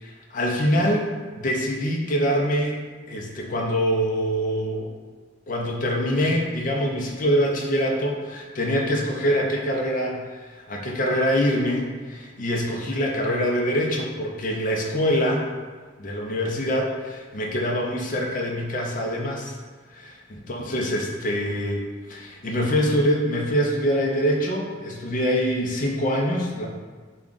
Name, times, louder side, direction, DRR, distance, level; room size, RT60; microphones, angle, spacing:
voice 1, 0.0-2.8 3.1-4.9 5.5-15.5 16.0-19.5 19.9-26.7, equal, 45° left, -1 dB, 0.5 m, -24 dB
3.5 x 2.3 x 3.8 m, 1.5 s
head